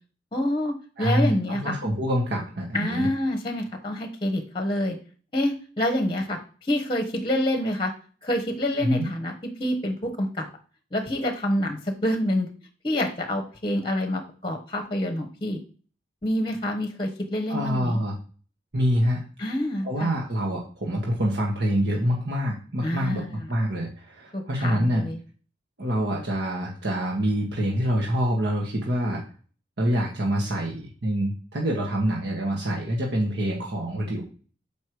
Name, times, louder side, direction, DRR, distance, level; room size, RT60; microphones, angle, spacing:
voice 1, 0.3-0.7 1.0-1.7 2.7-5.0 5.3-7.9 8.2-10.5 10.9-12.5 12.8-15.6 16.2-18.0 19.4-20.1 22.8-23.4 24.3-25.2, left 1 dB, 30° left, 5 dB, 1.0 m, -27 dB
voice 2, 1.0-3.1 8.8-9.0 17.5-18.1 18.7-19.2 19.8-25.0 25.8-29.2 29.8-34.2, equal, 70° right, -2 dB, 1.5 m, -26 dB
6.5 x 5.2 x 4.7 m, 0.39 s
head